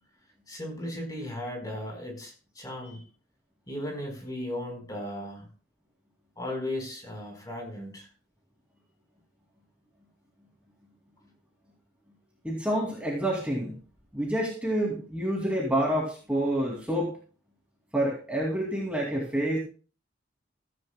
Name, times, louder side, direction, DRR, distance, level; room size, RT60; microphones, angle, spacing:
voice 1, 0.5-3.0 3.7-5.5 6.4-8.1, left 1 dB, 20° left, 2 dB, 4.1 m, -36 dB
voice 2, 12.4-13.8 14.1-17.1 17.9-19.6, right 1 dB, 5° right, -3 dB, 2.4 m, -28 dB
15.5 x 14.5 x 2.2 m, 0.37 s
head